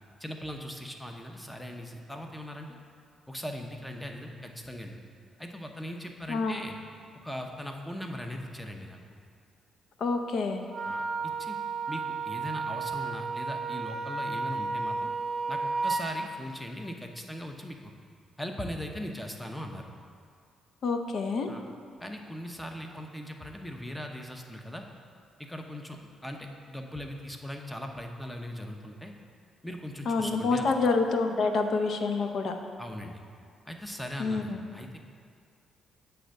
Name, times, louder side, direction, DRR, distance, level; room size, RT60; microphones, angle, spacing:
voice 1, 0.2-2.8 3.3-4.9 5.4-6.8 7.1-9.2 10.8-11.6 11.9-15.1 15.5-17.9 18.4-19.9 21.5-21.6 22.0-24.8 25.4-29.1 29.6-30.7 32.8-33.2 33.7-35.0, equal, 5° left, 3 dB, 0.7 m, -39 dB
voice 2, 6.3-6.6 10.0-10.6 20.8-21.5 30.1-32.5 34.2-34.6, left 4 dB, 60° left, 5 dB, 0.6 m, -27 dB
Wind instrument woodwind instrument, 10.7-16.2, right 4 dB, 35° right, 0.5 m, -32 dB
7.9 x 3.4 x 6.4 m, 2.3 s
cardioid pair, 90°, 0 cm